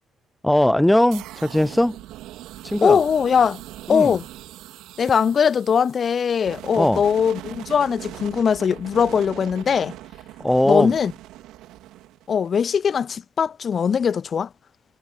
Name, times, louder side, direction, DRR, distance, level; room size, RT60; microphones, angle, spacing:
voice 1, 0.4-2.0 2.6-3.0 3.9-4.2 6.8-7.0 10.4-10.9, left 1 dB, 5° left, 0.3 m, -19 dB
sound 1, 1.1-12.9, right 15 dB, 90° right, 3.2 m, -41 dB
voice 2, 2.8-3.6 3.9-4.2 5.0-9.9 10.6-11.1 12.3-14.5, left 7 dB, 50° left, 1.1 m, -20 dB
cardioid pair, 90°, 0 cm